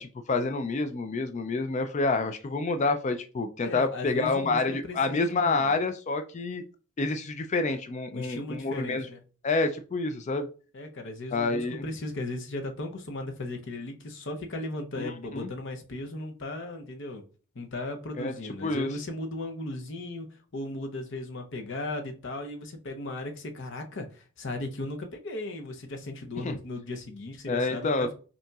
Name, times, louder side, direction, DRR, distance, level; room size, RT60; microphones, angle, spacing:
voice 1, 0.0-6.6 7.0-9.1 9.4-10.5 11.3-11.8 15.0-15.5 18.2-18.4 18.6-18.9 26.4-26.6 27.5-28.1, left 3 dB, 30° left, 0.3 m, -28 dB
voice 2, 3.6-5.8 8.1-9.2 10.7-17.2 17.5-28.1, left 2 dB, 55° left, 0.7 m, -36 dB
5.3 x 2.8 x 2.3 m
head